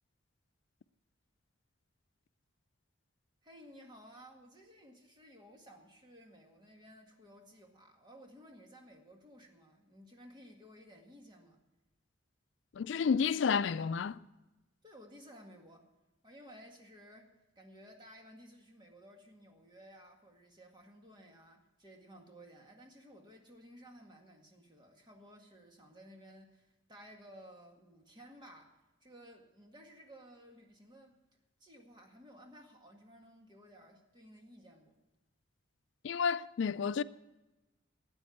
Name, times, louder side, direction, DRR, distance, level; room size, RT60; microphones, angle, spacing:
voice 1, 3.4-11.6 14.8-15.9 16.2-17.3 17.6-31.1 31.6-34.9, equal, 25° right, 2.0 m, -56 dB
voice 2, 12.8-14.2 36.0-37.0, left 6 dB, 75° left, 0.4 m, -30 dB
13.0 x 8.9 x 8.4 m
head